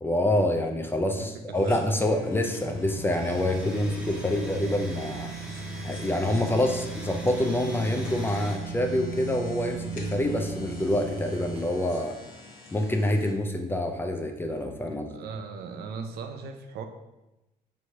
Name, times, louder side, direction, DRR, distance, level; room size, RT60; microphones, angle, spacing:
voice 1, 0.0-5.3 5.8-12.1 12.7-15.1, left 1 dB, 15° left, 4 dB, 0.4 m, -26 dB
voice 2, 1.1-1.8 15.1-16.8, right 5 dB, 70° right, 6 dB, 0.5 m, -38 dB
sound 1, 1.5-13.3, left 3 dB, 55° left, 0.8 m, -46 dB
sound 2, 2.6-11.7, right 4 dB, 30° right, 0.9 m, -37 dB
Domestic sounds home sounds, 3.0-8.5, equal, 5° right, 0.8 m, -44 dB
3.2 x 2.7 x 4.4 m, 0.97 s
cardioid pair, 110°, 17 cm